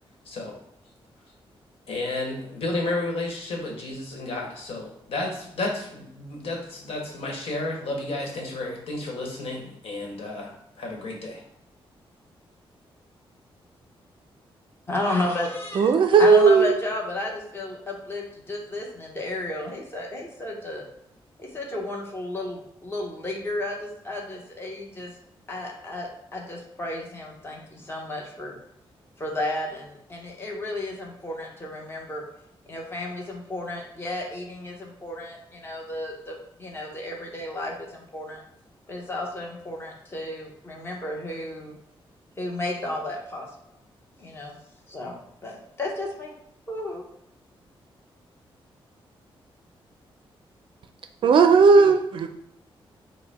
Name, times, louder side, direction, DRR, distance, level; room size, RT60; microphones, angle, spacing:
voice 1, 0.2-0.6 1.9-11.4, left 2 dB, 85° left, 0 dB, 1.2 m, -32 dB
voice 2, 14.9-20.8 21.4-25.1 25.5-28.5 29.2-32.2 32.7-38.4 38.9-41.8 42.4-43.5 44.2-44.6 44.9-45.1 45.4-46.3 46.7-47.0, left 2 dB, 25° left, -1 dB, 0.9 m, -32 dB
voice 3, 15.8-16.8 51.2-52.3, right 5 dB, 60° right, 7 dB, 0.4 m, -16 dB
5.4 x 2.1 x 4.1 m, 0.74 s
wide cardioid pair, 145°, 10 cm